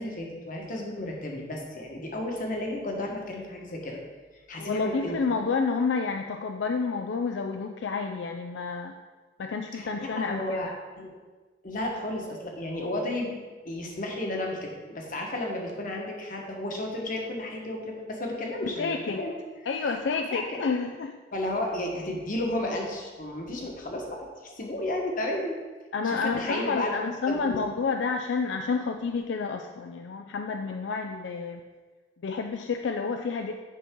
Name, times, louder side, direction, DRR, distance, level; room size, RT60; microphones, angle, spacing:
voice 1, 0.0-4.0 4.5-5.2 9.7-10.7 11.0-11.1 11.6-13.3 13.6-19.3 19.8-20.0 20.3-20.6 21.3-25.6 26.0-26.9 27.3-27.6, left 1 dB, 50° left, 0 dB, 1.3 m, -33 dB
voice 2, 4.6-9.0 9.4-10.8 18.6-19.3 19.6-21.1 25.9-31.6 32.2-33.5, left 4 dB, 75° left, 4 dB, 0.4 m, -29 dB
8.5 x 5.4 x 3.7 m, 1.3 s
head